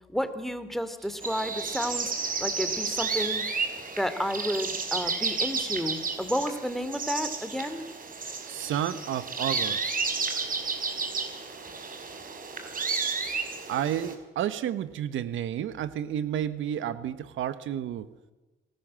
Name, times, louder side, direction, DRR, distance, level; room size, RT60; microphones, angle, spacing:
voice 1, 0.1-2.1 2.4-3.4 4.0-7.8, equal, ahead, 10 dB, 2.8 m, -31 dB
sound 1, 1.2-14.1, right 4 dB, 45° right, 4.9 m, -32 dB
voice 2, 8.5-9.8 13.7-18.1, right 10 dB, 80° right, 13 dB, 1.3 m, -31 dB
27.0 x 19.0 x 7.7 m, 1.1 s
cardioid pair, 90°, 20 cm